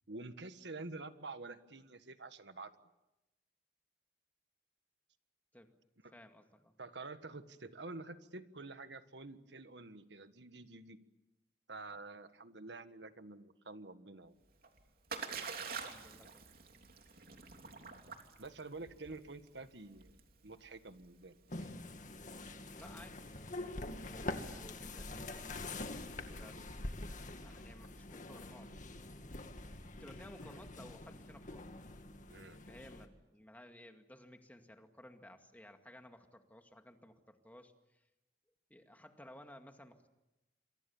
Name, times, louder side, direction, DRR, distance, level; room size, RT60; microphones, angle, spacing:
voice 1, 0.1-2.7 6.0-6.1 6.8-11.0 11.7-14.3 18.4-21.7 32.3-32.6, right 3 dB, 75° right, 10 dB, 1.5 m, -48 dB
voice 2, 6.1-6.7 15.6-16.5 22.6-25.5 26.3-29.3 30.0-31.7 32.5-38.1 38.7-40.1, left 1 dB, 10° left, 5 dB, 2.1 m, -57 dB
Splash splatter, 14.4-24.3, right 5 dB, 55° right, 3.1 m, -48 dB
sound 1, 21.5-33.1, left 2 dB, 45° left, 2.0 m, -45 dB
28.0 x 24.0 x 7.2 m, 0.96 s
head